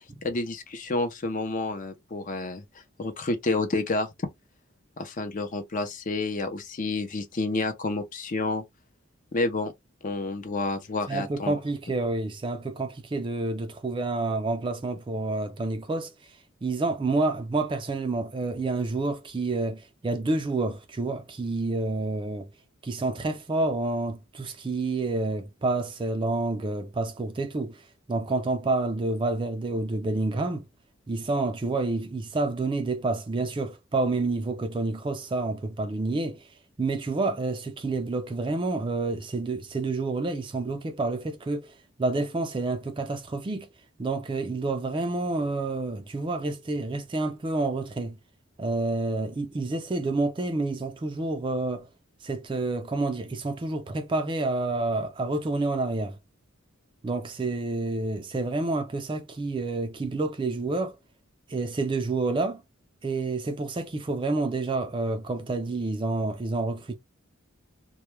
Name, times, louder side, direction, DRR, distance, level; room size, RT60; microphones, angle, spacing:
voice 1, 0.2-2.6 3.0-4.1 5.0-8.6 9.3-9.7 10.0-11.5, left 2 dB, 40° left, 0.5 m, -29 dB
voice 2, 11.1-16.1 16.6-22.5 22.8-27.8 28.1-30.6 31.1-36.4 36.8-41.7 42.0-43.7 44.0-48.2 48.6-51.9 52.2-56.2 57.0-60.9 61.5-62.6 63.0-67.0, right 3 dB, 25° right, 0.3 m, -28 dB
2.2 x 2.1 x 3.0 m
head